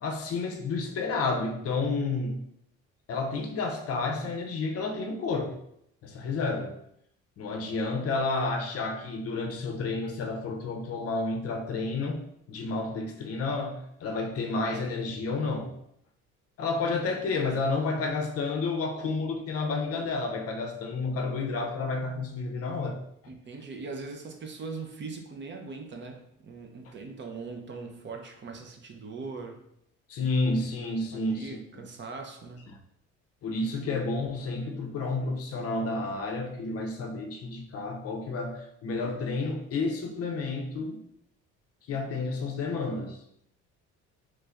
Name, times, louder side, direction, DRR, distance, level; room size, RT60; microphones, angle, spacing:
voice 1, 0.0-2.4 3.1-5.6 6.0-6.8 7.4-12.2 12.5-15.7 16.6-23.0 30.1-31.6 32.7-32.8 33.4-41.0 41.9-43.2, left 3 dB, 50° left, 3 dB, 0.6 m, -30 dB
voice 2, 23.3-29.6 31.1-32.7, right 4 dB, 35° right, 3 dB, 0.6 m, -40 dB
3.2 x 2.5 x 3.4 m, 0.74 s
cardioid pair, 100°, 30 cm